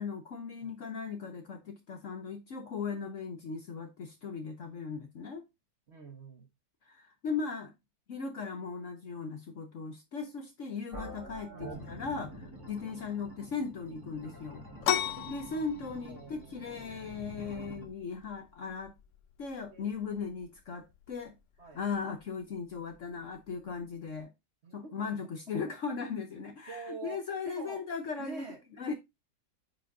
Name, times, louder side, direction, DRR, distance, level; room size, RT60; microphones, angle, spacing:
voice 1, 0.0-5.5 6.8-7.7 8.1-14.7 15.3-18.9 19.4-21.3 21.7-24.3 24.7-28.9, left 5 dB, 55° left, 1.0 m, -38 dB
voice 2, 5.9-6.5 11.5-11.9 12.9-13.1 16.1-17.2 19.7-19.9 21.6-21.8 24.6-25.0 26.7-27.8 28.2-28.6, right 4 dB, 40° right, 1.3 m, -46 dB
sound 1, 10.9-17.9, equal, 15° right, 1.7 m, -47 dB
sound 2, 14.8-24.2, left 11 dB, 85° left, 0.6 m, -40 dB
9.1 x 4.9 x 2.5 m
omnidirectional pair, 1.9 m